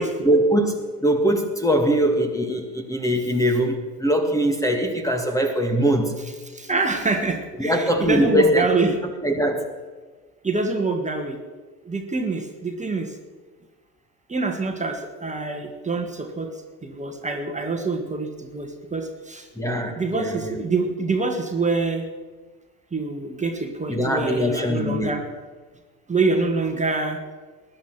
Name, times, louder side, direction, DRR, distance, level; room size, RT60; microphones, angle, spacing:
voice 1, 0.2-6.1 7.6-9.7 19.6-20.6 23.9-25.1, equal, 5° left, 5 dB, 2.0 m, -22 dB
voice 2, 6.5-8.9 10.4-11.4 11.8-13.2 14.3-16.5 16.8-19.5 20.0-22.1 22.9-25.2 26.1-27.2, right 3 dB, 15° right, 3 dB, 1.9 m, -25 dB
20.5 x 10.5 x 6.0 m, 1.4 s
figure-of-eight pair, 65°, 50 cm